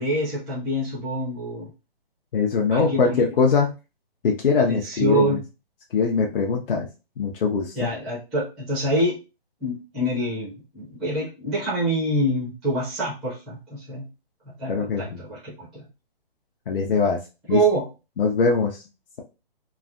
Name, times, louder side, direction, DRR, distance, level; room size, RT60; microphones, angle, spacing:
voice 1, 0.0-1.7 2.7-3.2 4.7-5.4 7.7-9.1 9.6-14.1 14.6-15.9 17.5-17.8, right 1 dB, ahead, -9 dB, 0.4 m, -26 dB
voice 2, 2.3-3.7 4.2-5.4 5.9-6.9 7.2-7.9 14.7-15.2 16.7-17.2 17.5-17.6 18.2-18.8, left 5 dB, 65° left, 1 dB, 0.7 m, -22 dB
3.1 x 2.2 x 2.5 m, 0.30 s
hypercardioid pair, 160°, 30 cm